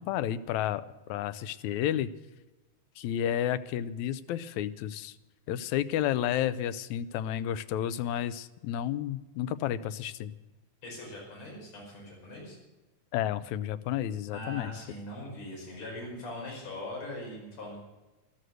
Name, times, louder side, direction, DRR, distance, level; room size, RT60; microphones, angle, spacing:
voice 1, 0.0-2.1 3.0-5.2 5.5-10.3 13.1-14.7, left 11 dB, 80° left, 14 dB, 1.9 m, -31 dB
voice 2, 10.8-12.6 14.3-17.8, left 1 dB, 60° left, -3 dB, 6.5 m, -41 dB
14.5 x 13.0 x 6.4 m, 1.1 s
omnidirectional pair, 3.5 m